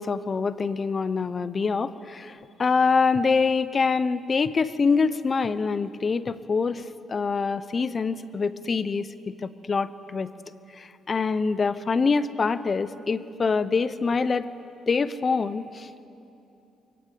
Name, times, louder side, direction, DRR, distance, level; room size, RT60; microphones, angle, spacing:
voice 1, 0.0-10.3 10.7-14.5 14.9-16.1, left 4 dB, 35° left, 15 dB, 0.8 m, -25 dB
23.0 x 17.5 x 8.5 m, 2.8 s
cardioid pair, 90°, 0 cm